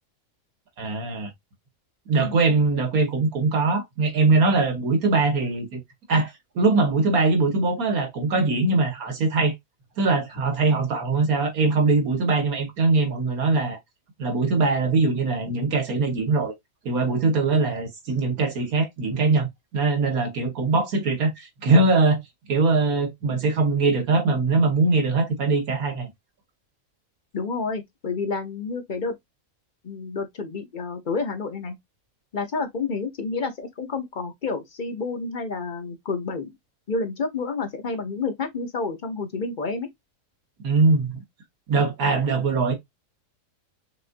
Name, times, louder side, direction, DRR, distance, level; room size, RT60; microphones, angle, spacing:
voice 1, 0.8-1.3 2.1-5.8 6.1-9.5 10.0-13.8 14.2-16.5 16.9-19.5 19.7-22.2 22.5-26.1 40.6-41.2 41.7-42.7, right 3 dB, 90° right, 1.7 m, -22 dB
voice 2, 27.3-29.1 29.8-31.7 32.3-36.5 36.9-39.9, left 4 dB, 40° left, 0.8 m, -29 dB
5.9 x 2.6 x 2.5 m
omnidirectional pair, 1.5 m